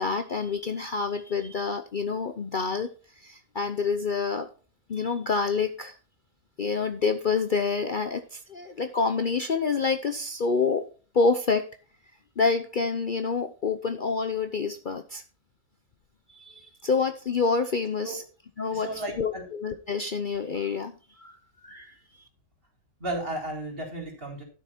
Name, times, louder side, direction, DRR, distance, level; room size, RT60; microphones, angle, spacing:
voice 1, 0.0-4.5 4.9-6.0 6.6-10.9 11.1-11.6 12.4-15.2 16.3-18.2 18.6-21.9, left 4 dB, 45° left, 8 dB, 0.8 m, -28 dB
voice 2, 18.7-19.5 23.0-24.4, right 1 dB, 45° right, 1 dB, 4.3 m, -34 dB
13.0 x 6.8 x 4.4 m, 0.37 s
omnidirectional pair, 1.4 m